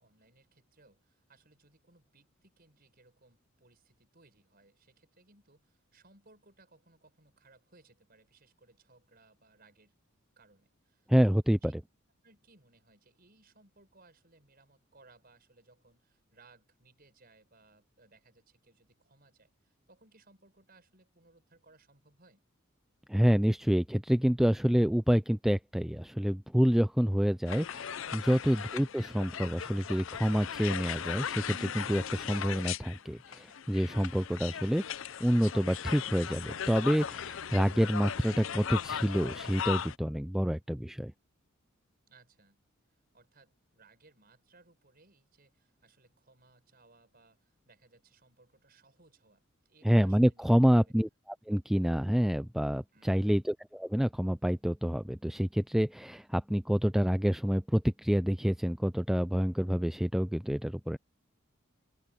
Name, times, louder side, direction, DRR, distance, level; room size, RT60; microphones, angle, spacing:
voice 1, 0.0-10.0 10.4-11.4 11.6-11.7 12.2-22.4 28.5-28.9 42.1-42.6 43.1-50.9 52.9-53.4, right 3 dB, 45° right, 6.6 m, -63 dB
voice 2, 11.1-11.7 23.1-34.8 35.2-41.1 49.8-51.1 51.5-61.0, equal, ahead, 0.3 m, -28 dB
sound 1, 27.5-40.0, left 8 dB, 65° left, 0.5 m, -38 dB
head